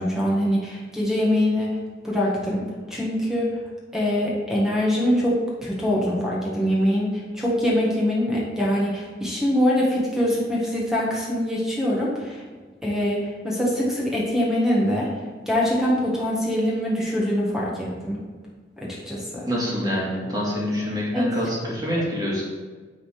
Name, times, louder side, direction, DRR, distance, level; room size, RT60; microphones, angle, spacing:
voice 1, 0.0-1.8 2.0-3.6 3.9-12.4 12.8-15.1 15.4-18.2 18.8-19.5 21.1-21.3, equal, 5° right, -5 dB, 1.5 m, -23 dB
voice 2, 19.5-22.4, equal, 20° right, -5 dB, 1.9 m, -26 dB
9.2 x 3.8 x 5.0 m, 1.4 s
head